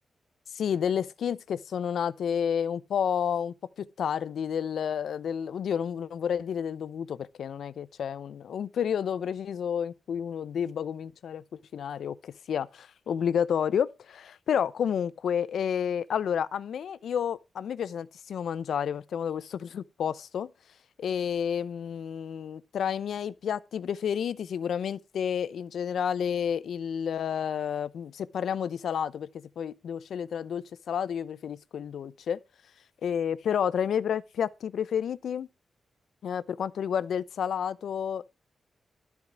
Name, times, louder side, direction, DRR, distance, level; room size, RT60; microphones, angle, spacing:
voice 1, 0.5-11.4 11.7-20.5 21.0-32.4 33.0-35.5 36.2-38.3, left 8 dB, 85° left, 0.6 m, -30 dB
13.0 x 4.7 x 7.2 m
wide cardioid pair, 175°, 0 cm